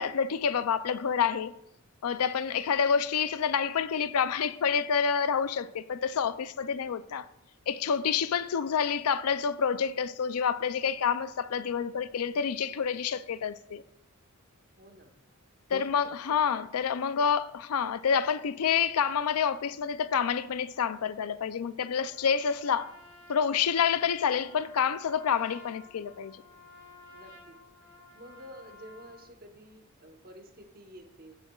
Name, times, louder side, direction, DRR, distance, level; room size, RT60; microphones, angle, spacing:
voice 1, 0.0-1.5 2.0-7.3 7.7-13.8 15.7-22.9 23.3-26.4, left 7 dB, 80° left, 0.4 m, -28 dB
voice 2, 14.8-15.2 16.3-16.4 24.0-24.1 27.1-27.6 28.1-31.4, equal, 40° right, 1.1 m, -50 dB
Trumpet, 22.1-29.3, left 3 dB, 55° left, 1.4 m, -54 dB
15.5 x 8.2 x 2.4 m
head